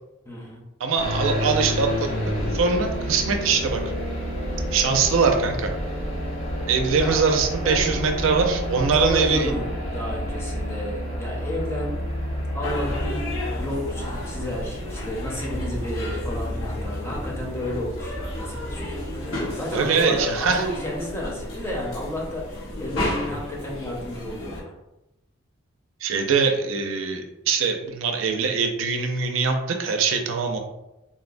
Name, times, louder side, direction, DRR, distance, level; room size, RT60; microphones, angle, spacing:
voice 1, 0.2-0.6 7.0-7.2 7.6-8.0 8.7-12.0 12.5-13.2 13.5-19.0 19.5-24.7, left 1 dB, 15° left, -4 dB, 0.6 m, -32 dB
voice 2, 0.8-3.8 4.7-5.7 6.7-9.5 19.7-20.7 26.0-30.6, right 5 dB, 75° right, 4 dB, 0.4 m, -22 dB
sound 1, 1.0-19.3, equal, 65° left, 1.3 m, -30 dB
sound 2, 12.6-24.6, left 1 dB, 85° left, 0.9 m, -33 dB
3.8 x 2.0 x 2.5 m, 0.94 s
head